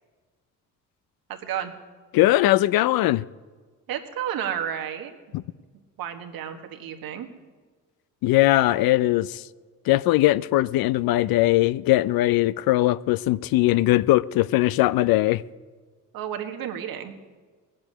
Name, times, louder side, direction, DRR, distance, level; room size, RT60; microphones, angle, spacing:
voice 1, 1.3-1.7 3.9-5.1 6.0-7.3 16.1-17.2, right 9 dB, 90° right, 1.6 m, -31 dB
voice 2, 2.1-3.2 5.3-5.4 8.2-9.4 9.9-15.4, left 16 dB, 90° left, 0.5 m, -20 dB
18.5 x 7.6 x 9.8 m
cardioid pair, 100°, 35 cm